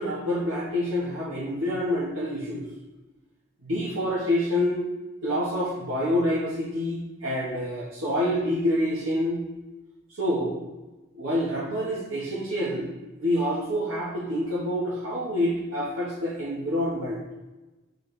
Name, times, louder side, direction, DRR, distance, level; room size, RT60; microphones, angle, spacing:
voice 1, 0.0-2.6 3.6-4.8 5.2-9.4 10.2-10.6 11.1-12.9 13.2-17.2, left 1 dB, 85° right, -9 dB, 1.4 m, -27 dB
6.3 x 4.6 x 3.3 m, 1.1 s
head